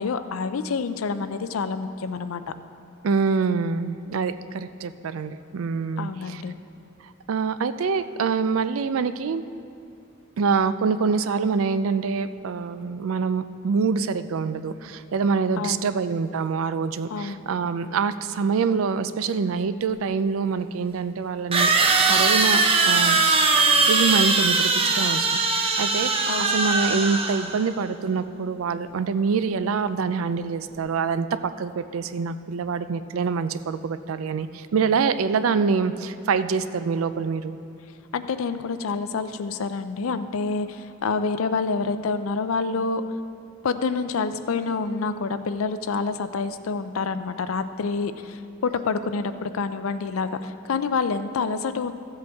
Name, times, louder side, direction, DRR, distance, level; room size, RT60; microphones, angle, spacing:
voice 1, 0.0-2.4 6.0-6.5 15.6-15.9 17.1-17.4 26.3-26.6 38.1-43.0 43.6-51.9, left 4 dB, 80° left, 11 dB, 0.5 m, -27 dB
voice 2, 3.0-6.4 7.3-9.4 10.4-21.7 22.0-37.6, right 5 dB, 75° right, 13 dB, 0.4 m, -25 dB
sound 1, 19.9-20.0 21.5-27.6, right 4 dB, 30° right, 0.6 m, -20 dB
14.5 x 7.7 x 3.5 m, 2.5 s
head